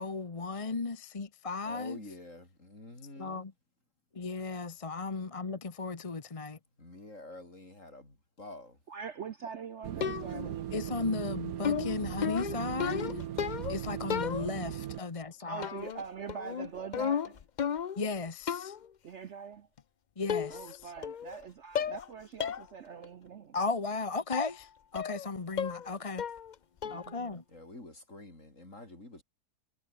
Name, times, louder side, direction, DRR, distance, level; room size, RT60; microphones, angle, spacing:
voice 1, 0.0-2.0 3.2-3.5 4.1-6.6 10.7-13.1 13.7-15.7 18.0-18.8 20.2-20.9 23.5-26.2 26.9-27.4, left 4 dB, 25° left, 0.9 m, -35 dB
voice 2, 1.6-3.4 6.8-8.8 27.5-29.2, left 2 dB, 50° left, 6.9 m, -48 dB
voice 3, 8.9-11.1 15.4-17.4 19.0-19.7 20.5-23.6 26.8-27.4, right 6 dB, 55° right, 1.0 m, -43 dB
sound 1, 9.8-15.0, right 11 dB, 70° right, 1.3 m, -38 dB
sound 2, 10.0-10.6 11.6-13.8 14.1-14.8 15.6-16.0 16.3-18.1 18.5-18.8 19.8-19.9 20.3-20.8 21.0-21.4 21.7-22.1 22.4-22.6 23.0-23.1 24.3-24.5 24.9-25.3 25.6-25.9 26.2-26.5 26.8-27.2, left 8 dB, 75° left, 0.4 m, -34 dB
omnidirectional pair, 1.7 m